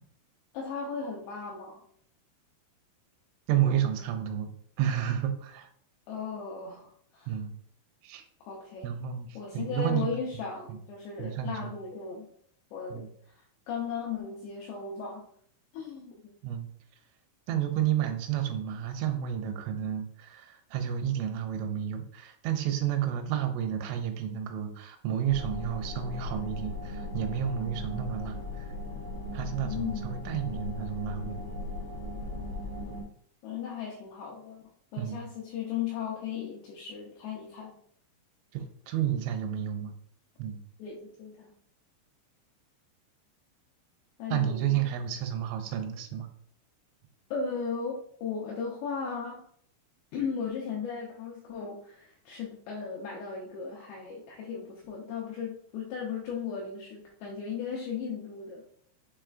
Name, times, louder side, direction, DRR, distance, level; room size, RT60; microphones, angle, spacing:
voice 1, 0.5-1.8 6.1-7.3 8.4-9.0 9.3-12.3 12.7-13.4 13.7-15.2 15.7-16.3 29.6-30.1 33.4-37.8 40.8-41.5 44.2-44.8 47.3-49.5 50.1-58.7, left 6 dB, 90° left, -2 dB, 2.4 m, -36 dB
voice 2, 3.5-4.5 4.8-5.7 7.3-7.5 8.0-8.3 8.8-9.3 9.5-10.2 10.7-10.8 11.2-11.7 12.9-13.1 16.4-16.7 17.5-28.7 29.3-31.4 35.0-35.2 38.5-39.9 40.4-40.6 44.3-46.3, right 10 dB, 85° right, 6 dB, 3.0 m, -31 dB
sound 1, 25.3-33.0, left 2 dB, 70° left, 1.1 m, -38 dB
7.1 x 3.1 x 2.4 m, 0.62 s
omnidirectional pair, 5.6 m